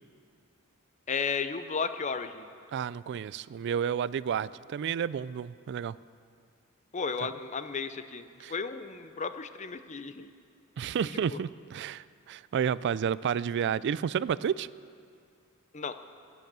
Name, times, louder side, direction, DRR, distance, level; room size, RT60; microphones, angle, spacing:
voice 1, 1.1-2.5 6.9-10.3 11.0-11.4 15.7-16.0, left 5 dB, 35° left, 11 dB, 0.6 m, -34 dB
voice 2, 2.7-6.0 7.2-7.3 8.4-8.5 10.8-14.7, right 8 dB, 55° right, 19 dB, 0.3 m, -31 dB
16.0 x 9.4 x 7.5 m, 2.3 s
head